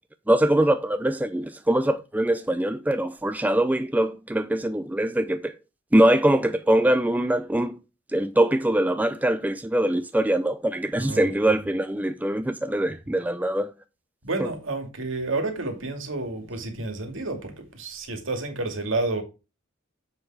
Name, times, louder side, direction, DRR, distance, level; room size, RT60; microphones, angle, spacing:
voice 1, 0.3-5.5 5.9-7.8 8.1-13.7 14.4-14.5, right 1 dB, 10° right, 0.4 m, -23 dB
voice 2, 10.9-11.5 14.2-19.2, right 2 dB, 70° right, 2.3 m, -30 dB
7.4 x 6.5 x 4.7 m
head